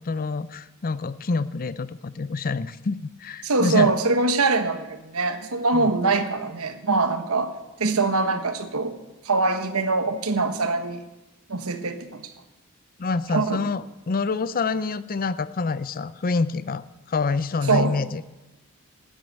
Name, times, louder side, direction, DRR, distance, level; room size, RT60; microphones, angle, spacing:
voice 1, 0.0-4.0 5.7-5.9 13.0-16.8 17.1-18.2, left 4 dB, 40° left, 15 dB, 0.5 m, -27 dB
voice 2, 3.4-7.5 7.8-9.0 9.2-11.0 11.5-12.3 13.3-13.7 17.7-17.9, right 3 dB, 70° right, 8 dB, 1.4 m, -23 dB
14.0 x 8.9 x 9.2 m, 1.1 s
head